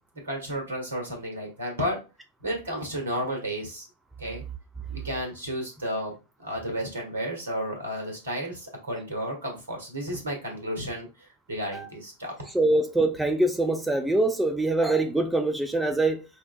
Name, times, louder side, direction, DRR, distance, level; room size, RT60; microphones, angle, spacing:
voice 1, 0.2-2.0 2.4-3.9 4.2-4.4 4.9-6.1 6.4-12.3, equal, 65° right, 1.4 m, -32 dB
voice 2, 12.5-16.3, right 2 dB, 5° right, 0.4 m, -24 dB
5.4 x 2.4 x 2.4 m
figure-of-eight pair, 90°, 0 cm